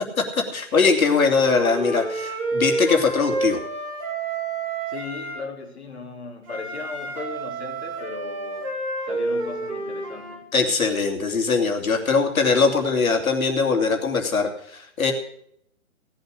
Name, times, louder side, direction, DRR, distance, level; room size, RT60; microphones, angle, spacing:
voice 1, 0.3-3.6 10.5-15.1, left 4 dB, 70° left, 3 dB, 3.1 m, -21 dB
Wind instrument woodwind instrument, 1.3-5.4 6.5-10.4, right 2 dB, 25° right, 3.6 m, -29 dB
voice 2, 4.9-8.8 9.1-10.5, left 4 dB, 45° left, 1 dB, 3.5 m, -37 dB
17.5 x 8.0 x 6.7 m, 0.69 s
hypercardioid pair, 180°, 43 cm